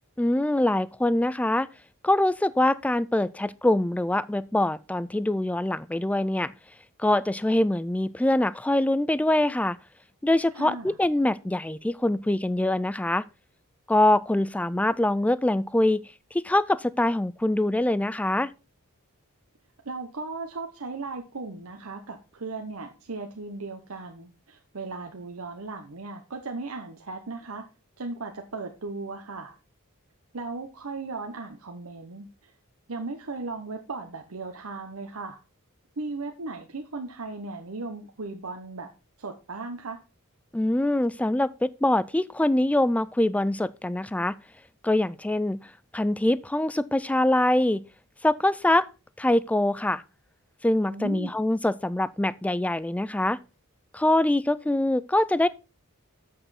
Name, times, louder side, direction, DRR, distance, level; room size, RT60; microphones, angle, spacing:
voice 1, 0.2-1.7 2.0-6.5 7.0-9.8 10.2-13.2 13.9-18.5 40.5-44.4 44.8-45.6 45.9-47.8 48.2-48.9 49.2-50.0 50.6-53.4 53.9-55.5, left 1 dB, 5° left, 0.3 m, -24 dB
voice 2, 10.5-10.9 19.8-27.7 28.0-29.5 30.3-32.5 32.9-35.4 36.0-38.9 39.2-40.0 50.9-51.3, right 3 dB, 70° right, 1.0 m, -37 dB
7.7 x 6.7 x 4.2 m
head